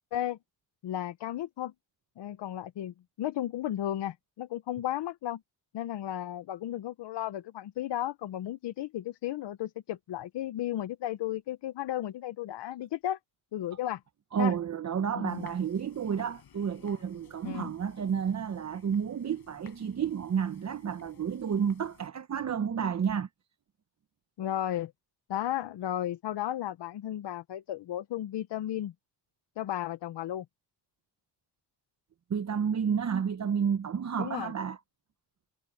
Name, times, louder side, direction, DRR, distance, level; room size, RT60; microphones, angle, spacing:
voice 1, 0.8-1.7 2.2-5.4 5.7-13.2 13.5-14.0 14.4-14.5 15.1-15.5 17.4-17.7 24.4-24.9 25.3-28.9 29.6-30.4 34.2-34.5, left 12 dB, 80° left, 1.0 m, -34 dB
voice 2, 14.3-23.3 32.3-34.8, right 7 dB, 40° right, 0.9 m, -31 dB
sound 1, 15.3-22.1, left 8 dB, 60° left, 6.5 m, -57 dB
cardioid pair, 115°, 42 cm